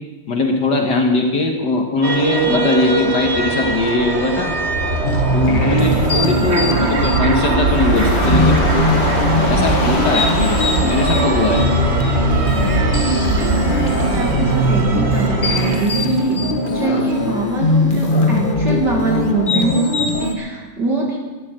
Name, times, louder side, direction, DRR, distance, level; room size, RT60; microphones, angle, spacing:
voice 1, 0.3-4.5 5.3-8.7 9.5-11.7, left 2 dB, 55° left, 2 dB, 1.8 m, -20 dB
sound 1, 2.0-15.9, right 3 dB, 35° right, 1.3 m, -20 dB
sound 2, 5.0-20.3, left 1 dB, 30° left, 1.0 m, -20 dB
Dog / Rain, 7.3-19.5, left 4 dB, 85° left, 2.7 m, -29 dB
voice 2, 12.0-16.4 16.7-21.2, right 2 dB, 50° right, -1 dB, 2.6 m, -23 dB
12.5 x 10.5 x 9.0 m, 1.3 s
omnidirectional pair, 2.4 m